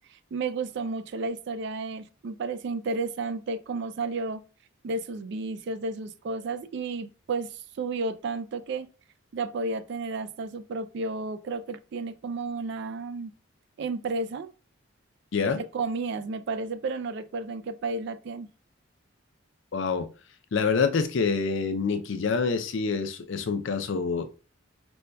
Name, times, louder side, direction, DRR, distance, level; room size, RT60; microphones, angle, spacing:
voice 1, 0.3-4.4 4.8-8.9 9.3-13.3 13.8-14.5 15.5-18.5, right 3 dB, 55° right, 0.3 m, -32 dB
voice 2, 19.7-20.1 20.5-24.3, left 5 dB, 60° left, 0.4 m, -26 dB
5.1 x 2.2 x 2.2 m
head